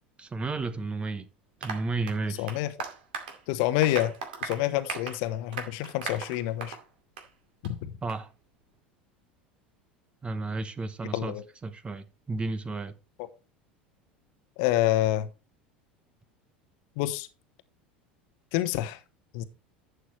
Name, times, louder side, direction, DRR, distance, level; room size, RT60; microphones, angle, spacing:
voice 1, 0.2-1.3 1.6-2.5 8.0-8.3 10.2-11.3 11.6-12.9, right 3 dB, 20° right, 1.1 m, -32 dB
Applause, 1.6-6.8 7.2-7.3 7.6-7.7 8.1-8.2, right 5 dB, 65° right, 2.3 m, -38 dB
voice 2, 2.4-2.7 3.5-4.1 4.4-6.8 7.6-8.0 11.1-11.4 14.6-15.3 17.0-17.3 18.5-19.0 19.3-19.4, left 14 dB, 55° left, 1.1 m, -27 dB
11.5 x 7.9 x 3.2 m
figure-of-eight pair, 75°, 5 cm